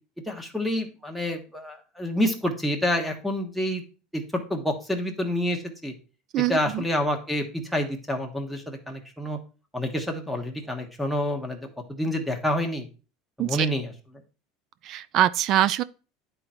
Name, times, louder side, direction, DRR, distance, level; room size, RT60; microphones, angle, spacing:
voice 1, 0.3-3.8 4.1-5.9 6.4-9.4 9.7-11.6 11.9-12.9 13.4-13.9, left 1 dB, ahead, 1.2 m, -28 dB
voice 2, 6.3-6.8 13.4-13.7 14.8-15.8, right 12 dB, 45° right, 0.3 m, -23 dB
9.9 x 3.9 x 4.3 m
supercardioid pair, 150°, 0 cm